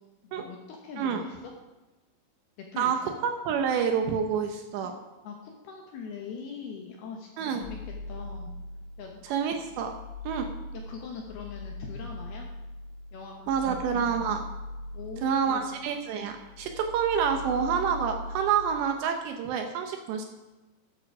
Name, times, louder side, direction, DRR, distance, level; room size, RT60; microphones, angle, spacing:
voice 1, 0.2-1.5 2.6-3.0 5.2-8.5 9.0-9.2 10.7-12.5 13.1-13.7 14.9-15.7, left 5 dB, 70° left, 1 dB, 2.5 m, -42 dB
voice 2, 2.8-5.0 7.4-7.6 9.2-9.9 10.2-10.5 13.5-14.4 15.2-20.3, right 7 dB, 75° right, 5 dB, 2.8 m, -28 dB
sound 1, 7.6-9.1 9.5-16.0 16.3-18.6, left 2 dB, 40° left, 2.9 m, -41 dB
13.5 x 8.9 x 4.8 m, 1.1 s
omnidirectional pair, 5.7 m